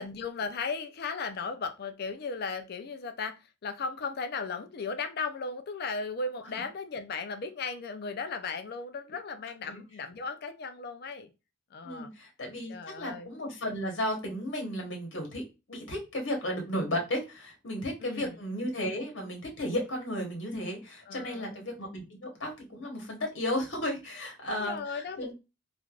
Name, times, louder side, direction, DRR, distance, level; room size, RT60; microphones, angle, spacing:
voice 1, 0.0-3.4 3.6-11.3 11.7-12.1 12.7-13.3 18.0-18.4 21.1-21.6 24.6-25.3, left 4 dB, 55° left, 8 dB, 0.4 m, -36 dB
voice 2, 11.8-15.4 15.7-25.3, left 1 dB, 75° left, 1 dB, 1.1 m, -34 dB
3.3 x 2.5 x 2.3 m, 0.27 s
head